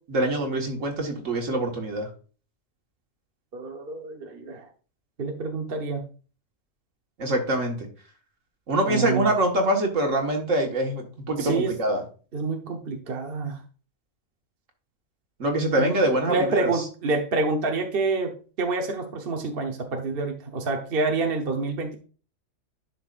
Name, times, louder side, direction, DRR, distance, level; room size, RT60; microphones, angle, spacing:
voice 1, 0.1-2.1 7.2-7.9 8.7-12.0 15.4-16.8, right 1 dB, 70° right, 2 dB, 1.9 m, -24 dB
voice 2, 3.5-4.7 5.2-6.0 8.9-9.3 11.4-11.8 12.3-13.6 15.7-22.0, right 3 dB, 50° right, 2 dB, 1.2 m, -27 dB
11.0 x 5.9 x 2.5 m, 0.38 s
omnidirectional pair, 1.4 m